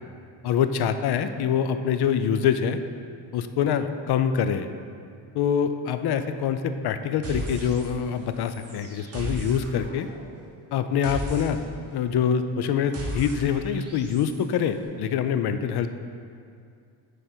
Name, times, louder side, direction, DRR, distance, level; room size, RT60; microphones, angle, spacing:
voice 1, 0.4-2.8 3.3-4.7 5.3-10.1 10.7-11.6 11.9-15.9, left 8 dB, 55° left, 10 dB, 0.5 m, -25 dB
sound 1, 7.2-14.4, right 1 dB, 30° right, 1.4 m, -36 dB
8.9 x 5.1 x 4.4 m, 2.4 s
cardioid pair, 145°, 47 cm